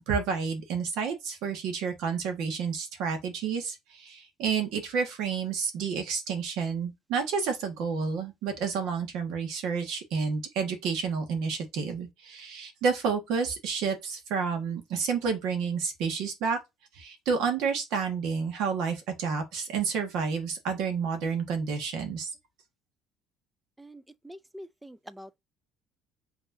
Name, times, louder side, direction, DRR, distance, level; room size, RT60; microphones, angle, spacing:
voice 1, 0.1-16.6 16.9-22.3, right 5 dB, 60° right, 1.5 m, -30 dB
voice 2, 23.8-25.4, equal, 5° right, 0.3 m, -46 dB
5.7 x 3.4 x 2.7 m
cardioid pair, 170°, 0 cm